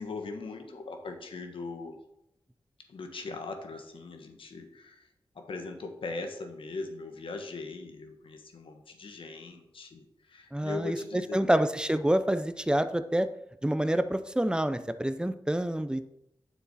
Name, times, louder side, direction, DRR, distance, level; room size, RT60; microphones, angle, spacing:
voice 1, 0.0-2.0 2.9-5.1 5.3-11.4, left 3 dB, 80° left, 5 dB, 1.4 m, -40 dB
voice 2, 10.5-11.0 11.3-13.3 13.6-16.1, right 1 dB, 10° right, 11 dB, 0.7 m, -27 dB
9.5 x 7.1 x 4.2 m, 0.82 s
cardioid pair, 65°, 9 cm